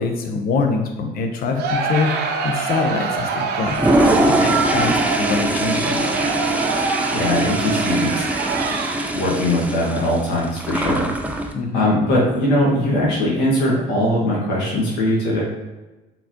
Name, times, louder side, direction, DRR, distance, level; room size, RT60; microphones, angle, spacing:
voice 1, 0.0-2.1 2.4-3.8 4.1-6.1 11.5-11.9, left 4 dB, 60° left, 4 dB, 0.8 m, -24 dB
Crowd, 1.6-9.3, right 4 dB, 70° right, 0.7 m, -25 dB
Toilet flush, 3.6-11.5, right 1 dB, 10° right, 0.4 m, -22 dB
voice 2, 6.8-8.1 9.1-11.5 11.7-15.4, left 1 dB, 90° left, -5 dB, 1.5 m, -20 dB
4.4 x 3.9 x 2.9 m, 1.1 s
cardioid pair, 110°, 17 cm